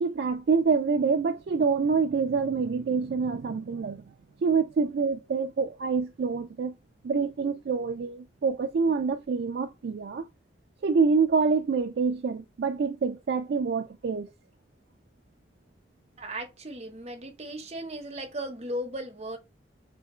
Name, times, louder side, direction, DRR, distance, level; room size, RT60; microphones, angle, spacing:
voice 1, 0.0-4.1 4.4-6.7 7.0-10.2 10.8-14.3, right 5 dB, 70° right, 0.4 m, -26 dB
voice 2, 16.2-19.4, right 1 dB, 35° right, 1.0 m, -36 dB
3.4 x 2.8 x 4.2 m
head